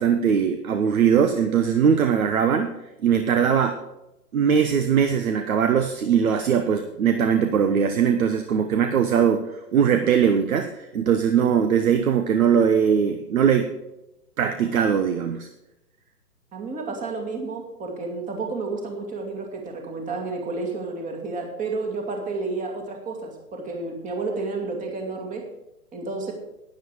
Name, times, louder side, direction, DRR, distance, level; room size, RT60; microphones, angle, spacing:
voice 1, 0.0-3.8 4.3-13.7 14.4-15.5, right 7 dB, 60° right, 7 dB, 1.2 m, -21 dB
voice 2, 16.5-25.4 25.9-26.3, right 3 dB, 15° right, 2 dB, 2.2 m, -31 dB
12.0 x 10.0 x 4.8 m, 0.91 s
figure-of-eight pair, 125°, 48 cm